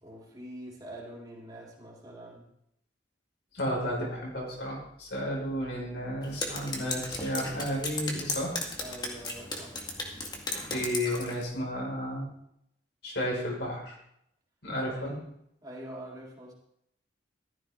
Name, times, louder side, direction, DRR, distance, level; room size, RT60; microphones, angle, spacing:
voice 1, 0.0-2.5 8.8-9.8 15.0-15.3 15.6-16.5, right 1 dB, 20° right, -4 dB, 3.9 m, -45 dB
voice 2, 3.5-8.5 10.7-12.3 13.0-14.0 14.6-15.1, equal, 70° left, -3 dB, 5.8 m, -32 dB
Drip, 6.2-11.4, left 2 dB, 25° left, 2.0 m, -36 dB
15.0 x 13.5 x 3.8 m, 0.75 s
head